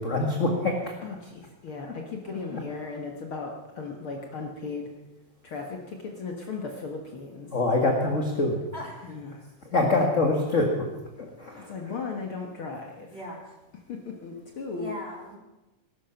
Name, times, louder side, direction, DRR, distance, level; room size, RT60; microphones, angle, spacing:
voice 1, 0.0-0.9 1.8-1.9 2.5-2.6 7.5-8.6 9.7-10.9 11.2-11.9, left 2 dB, 30° left, 1 dB, 1.7 m, -25 dB
voice 2, 1.0-5.0 5.4-7.5 9.0-9.5 11.6-13.2 13.9-14.9, left 4 dB, 50° left, 2 dB, 2.0 m, -37 dB
voice 3, 2.2-2.7 8.7-9.2 13.1-13.5 14.7-15.4, equal, 20° right, 0 dB, 3.4 m, -40 dB
20.0 x 12.0 x 5.8 m, 1.0 s
omnidirectional pair, 3.3 m